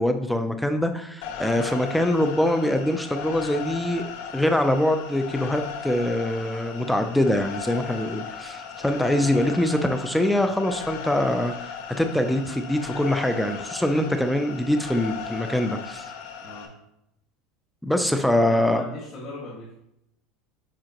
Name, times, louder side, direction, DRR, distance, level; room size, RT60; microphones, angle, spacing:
voice 1, 0.0-4.0 4.3-16.1 17.8-18.8, left 1 dB, ahead, 6 dB, 0.4 m, -24 dB
sound 1, 1.2-16.7, left 6 dB, 85° left, 1.8 m, -37 dB
voice 2, 18.4-19.7, left 1 dB, 35° left, -6 dB, 1.8 m, -38 dB
7.6 x 5.5 x 2.9 m, 0.81 s
supercardioid pair, 145°, 0 cm